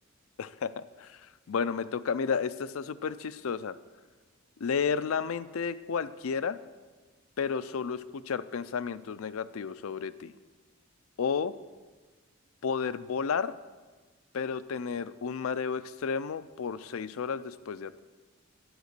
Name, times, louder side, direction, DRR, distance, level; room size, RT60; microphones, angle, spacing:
voice 1, 0.4-1.1 1.5-3.7 4.6-6.6 7.4-10.3 11.2-11.5 12.6-13.5 14.3-18.0, left 6 dB, 75° left, 15 dB, 0.4 m, -32 dB
11.0 x 8.0 x 6.6 m, 1.3 s
head